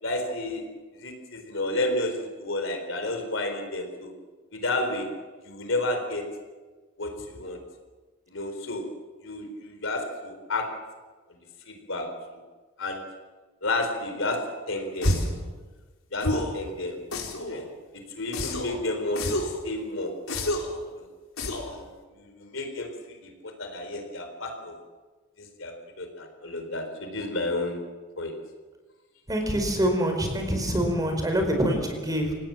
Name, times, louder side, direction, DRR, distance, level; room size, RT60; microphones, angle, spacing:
voice 1, 0.0-0.7 1.0-4.1 4.5-5.2 5.4-6.3 7.0-7.6 8.3-9.0 9.2-10.8 11.7-12.2 12.8-13.1 13.6-15.2 16.1-17.0 17.5-17.7 18.1-20.2 21.0-21.1 21.6-21.9 22.2-24.7 25.4-27.9 28.2-28.3, left 2 dB, 65° left, 5 dB, 4.2 m, -31 dB
sound 1, 15.0-15.4 16.2-16.6 17.1-17.6 18.3-18.8 19.2-19.6 20.3-20.8 21.4-21.8, left 1 dB, 90° left, 4.5 m, -28 dB
voice 2, 29.3-32.3, equal, 20° right, 4 dB, 4.7 m, -25 dB
27.5 x 18.5 x 7.6 m, 1.3 s
head